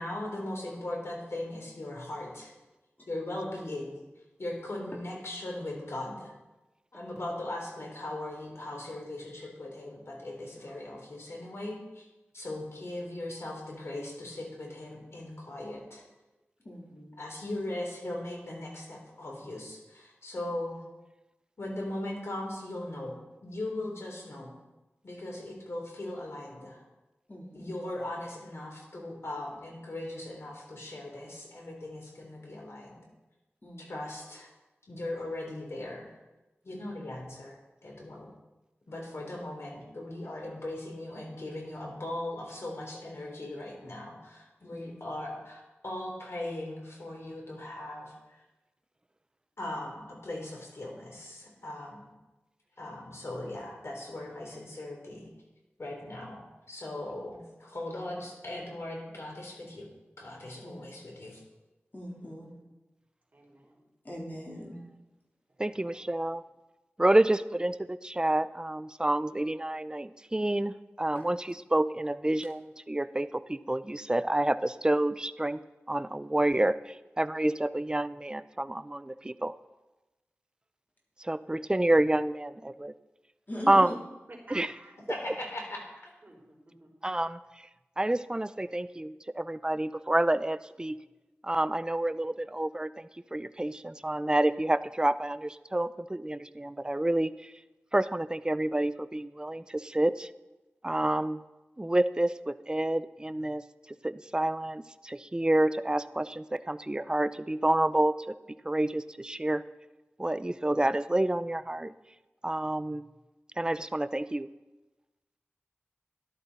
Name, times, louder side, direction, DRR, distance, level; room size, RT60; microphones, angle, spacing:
voice 1, 0.0-2.5 3.1-4.0 4.4-6.3 6.9-12.1 12.3-16.0 17.2-20.8 21.6-23.2 23.4-24.5 25.0-26.8 27.5-33.0 33.9-34.5 34.9-36.1 36.6-38.3 38.9-48.4 49.6-52.1 52.8-55.3 55.8-56.4 56.7-59.9 60.2-61.4 85.1-86.1, left 1 dB, 75° left, 0 dB, 3.4 m, -39 dB
voice 2, 16.6-17.2 27.3-27.8 33.6-34.1 36.7-36.9 44.6-44.9 60.6-60.9 61.9-62.5 64.0-64.8 83.5-83.9, equal, 45° left, -3 dB, 3.4 m, -41 dB
voice 3, 62.2-62.6 63.3-63.9 65.5-66.2 84.3-84.9 86.2-86.9, right 1 dB, 40° right, -1 dB, 3.7 m, -53 dB
voice 4, 65.6-66.4 67.0-75.6 75.9-79.5 81.2-82.9 83.7-83.9 84.5-84.7 87.0-87.4 88.0-91.0 91.4-97.5 97.9-100.3 100.8-101.4 101.8-103.6 104.0-108.3 108.6-109.6 110.2-111.9 112.4-113.1 113.6-114.5, right 1 dB, 20° right, 13 dB, 0.5 m, -28 dB
13.5 x 11.5 x 4.1 m, 1.1 s
wide cardioid pair, 60°, 5 cm